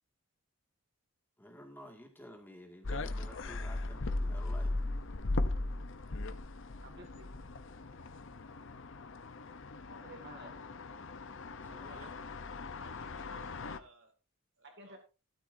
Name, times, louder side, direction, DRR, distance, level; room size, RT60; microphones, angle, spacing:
voice 1, 1.4-4.8 11.6-12.1, equal, 10° left, 3 dB, 2.0 m, -52 dB
sound 1, 2.8-13.8, left 2 dB, 60° left, 0.8 m, -38 dB
voice 2, 6.8-7.3 9.9-10.7 11.6-12.1 14.6-15.0, right 2 dB, 55° right, 5 dB, 2.2 m, -53 dB
voice 3, 11.6-12.1 12.8-14.1 14.6-15.0, right 2 dB, 70° right, 2 dB, 3.7 m, -58 dB
13.0 x 12.5 x 2.7 m, 0.31 s
head